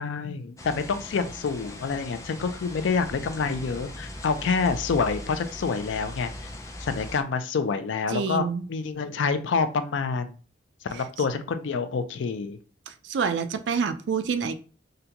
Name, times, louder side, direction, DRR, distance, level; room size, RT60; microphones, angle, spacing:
voice 1, 0.0-6.5 6.8-10.3 10.9-12.6, left 5 dB, 85° left, 10 dB, 0.4 m, -27 dB
sound 1, 0.6-7.2, left 1 dB, 15° left, 0.4 m, -40 dB
voice 2, 8.1-8.7 12.9-14.5, right 6 dB, 70° right, 10 dB, 0.3 m, -27 dB
3.8 x 2.2 x 2.8 m, 0.37 s
head